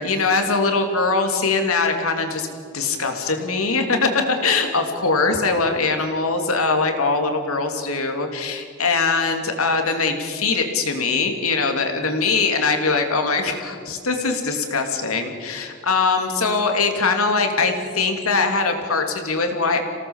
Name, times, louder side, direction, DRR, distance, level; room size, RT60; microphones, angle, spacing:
voice 1, 0.0-2.5 2.7-19.8, left 4 dB, 90° left, 4 dB, 3.1 m, -22 dB
27.0 x 18.0 x 7.3 m, 2.2 s
head